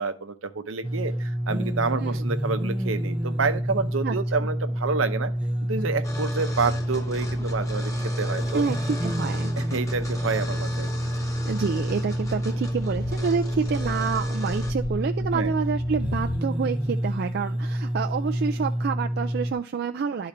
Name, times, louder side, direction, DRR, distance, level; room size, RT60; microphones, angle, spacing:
voice 1, 0.0-5.3 5.6-7.9 8.2-8.6 9.6-10.9 15.3-15.5, right 4 dB, 85° right, 10 dB, 0.7 m, -28 dB
sound 1, 0.8-19.5, equal, 5° right, 0.6 m, -28 dB
sound 2, 6.0-14.7, left 2 dB, 15° left, 1.0 m, -38 dB
voice 2, 8.5-9.5 11.4-20.3, right 5 dB, 55° right, 5 dB, 0.4 m, -28 dB
sound 3, 11.1-16.4, left 4 dB, 45° left, 0.4 m, -40 dB
11.5 x 3.9 x 4.2 m, 0.40 s
head